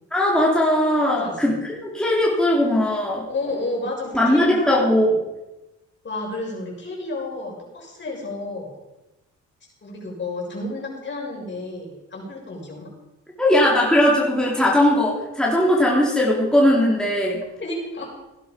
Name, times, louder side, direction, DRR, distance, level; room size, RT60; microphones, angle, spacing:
voice 1, 0.1-1.5 1.8-3.3 4.1-5.1 13.4-17.4, left 1 dB, 5° left, -4 dB, 3.7 m, -19 dB
voice 2, 1.0-1.6 3.3-5.2 6.0-8.7 9.8-12.9 17.6-18.1, left 2 dB, 40° left, -1 dB, 6.4 m, -31 dB
17.0 x 10.5 x 5.3 m, 1.0 s
cardioid pair, 90°, 30 cm